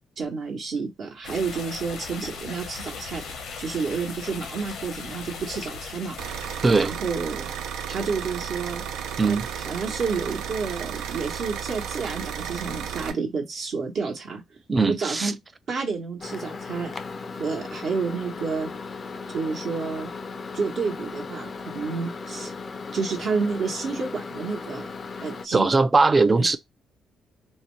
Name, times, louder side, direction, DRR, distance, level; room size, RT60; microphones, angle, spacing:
voice 1, 0.2-3.2 3.6-6.2 6.8-7.5 7.9-8.8 9.3-9.4 9.7-14.4 14.9-15.3 15.7-16.9 17.4-18.7 19.3-20.1 20.5-22.5 22.9-24.9 25.2-25.7, right 5 dB, 65° right, 1.0 m, -30 dB
sound 1, 1.2-6.8, left 5 dB, 75° left, 0.7 m, -38 dB
sound 2, 6.2-13.1, right 8 dB, 85° right, 0.4 m, -33 dB
voice 2, 6.6-6.9 9.2-9.5 14.7-15.3 25.5-26.6, right 3 dB, 25° right, 0.4 m, -20 dB
Microwave oven, 16.2-25.5, left 4 dB, 40° left, 0.4 m, -37 dB
2.7 x 2.1 x 3.1 m
cardioid pair, 90°, 0 cm